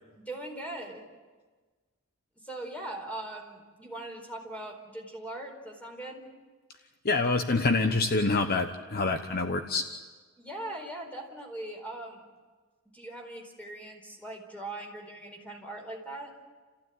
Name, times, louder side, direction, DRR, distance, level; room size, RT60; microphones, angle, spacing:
voice 1, 0.2-1.0 2.4-6.3 10.4-12.2 12.9-16.3, right 1 dB, 5° left, 2 dB, 4.6 m, -40 dB
voice 2, 7.0-9.8, left 3 dB, 45° left, 7 dB, 1.0 m, -26 dB
29.5 x 15.5 x 9.5 m, 1.4 s
head